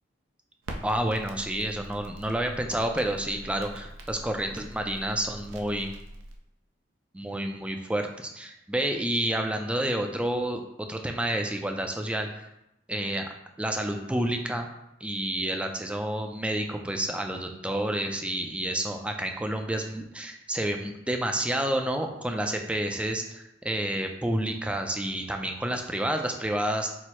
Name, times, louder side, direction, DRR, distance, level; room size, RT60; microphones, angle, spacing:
Crackle, 0.6-6.4, right 1 dB, 90° right, 0.5 m, -43 dB
voice 1, 0.8-5.9 7.1-10.6 10.9-12.5 12.9-13.3 13.6-14.7 15.0-26.9, right 1 dB, 5° right, 4 dB, 0.3 m, -29 dB
4.5 x 2.0 x 4.3 m, 0.86 s
head